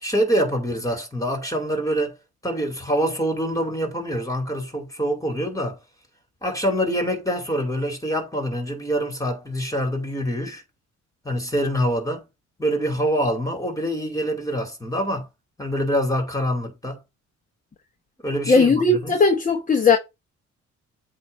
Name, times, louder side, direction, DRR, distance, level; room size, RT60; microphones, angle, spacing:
voice 1, 0.0-2.1 2.4-5.8 6.4-10.6 11.2-12.2 12.6-15.3 15.6-17.0 18.2-19.2, equal, 10° left, 2.7 m, -25 dB
voice 2, 18.5-20.0, left 4 dB, 25° left, 1.1 m, -17 dB
8.2 x 2.8 x 5.3 m
cardioid pair, 90°, 30 cm